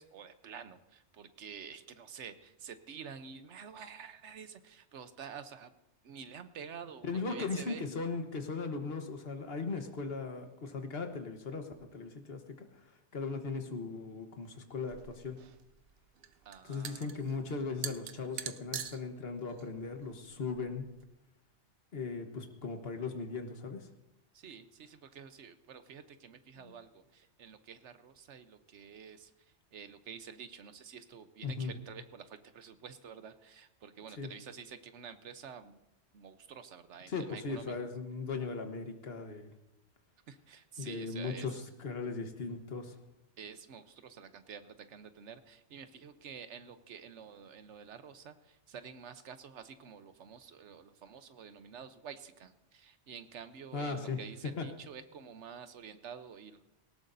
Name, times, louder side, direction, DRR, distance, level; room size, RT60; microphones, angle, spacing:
voice 1, 0.0-5.7 6.0-7.9 16.4-17.1 24.3-29.3 29.7-35.7 36.1-37.9 40.3-41.5 43.4-56.6, right 7 dB, 80° right, 10 dB, 1.2 m, -49 dB
voice 2, 7.1-12.7 13.1-15.4 16.6-20.9 21.9-23.9 31.4-31.7 34.1-34.3 37.1-39.5 40.8-42.9 53.7-54.2 54.6-54.7, left 4 dB, 60° left, 5 dB, 1.5 m, -38 dB
sound 1, 14.9-21.0, right 9 dB, 60° right, 0.8 m, -45 dB
18.0 x 18.0 x 2.7 m, 0.94 s
omnidirectional pair, 1.2 m